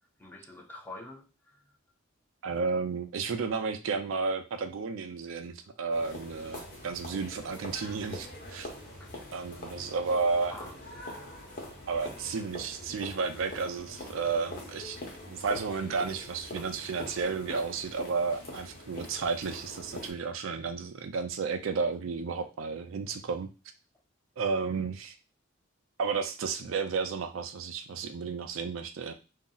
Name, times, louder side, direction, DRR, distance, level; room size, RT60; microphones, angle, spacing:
voice 1, 0.2-1.6 9.0-9.1 10.5-11.1, left 2 dB, 10° left, 1 dB, 0.5 m, -46 dB
voice 2, 2.4-8.7 9.3-10.6 11.9-15.0 15.3-23.5 24.4-25.2 26.0-29.1, right 4 dB, 75° right, 8 dB, 0.4 m, -32 dB
sound 1, 5.9-20.1, left 1 dB, 45° left, 0.9 m, -44 dB
2.6 x 2.0 x 3.7 m, 0.30 s
head